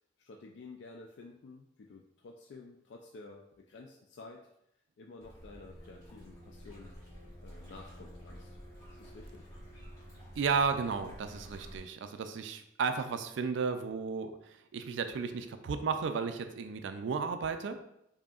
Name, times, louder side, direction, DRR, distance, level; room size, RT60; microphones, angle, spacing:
voice 1, 0.2-4.5 5.0-6.9 7.4-8.6 8.9-9.5, left 3 dB, 70° left, 1 dB, 0.3 m, -51 dB
sound 1, 5.2-11.8, equal, 20° left, 1.4 m, -50 dB
voice 2, 10.4-17.8, right 5 dB, 75° right, 8 dB, 0.3 m, -33 dB
4.9 x 2.7 x 2.4 m, 0.81 s
head